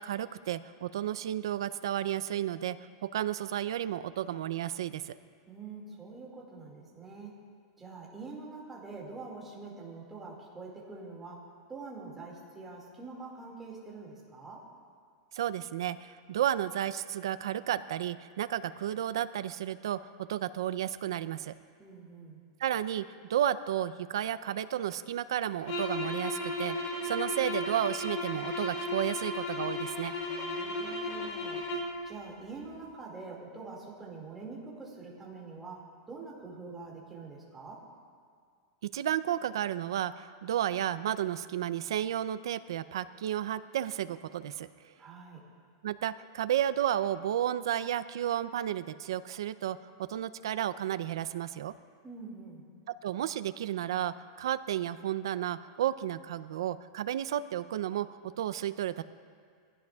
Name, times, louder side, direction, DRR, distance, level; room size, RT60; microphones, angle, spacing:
voice 1, 0.0-2.8 3.0-5.1 15.3-21.5 22.6-23.0 23.3-30.1 38.8-44.7 45.8-49.8 50.1-51.7 53.0-59.0, right 11 dB, 80° right, 14 dB, 0.5 m, -32 dB
voice 2, 5.5-7.4 7.8-11.4 11.7-14.6 21.8-22.4 30.3-31.6 32.1-37.8 45.0-45.4 52.0-52.6, right 4 dB, 10° right, -4 dB, 2.1 m, -45 dB
sound 1, 25.6-32.0, left 2 dB, 40° left, 2.6 m, -35 dB
22.5 x 15.5 x 2.4 m, 2.1 s
supercardioid pair, 180°, 2 cm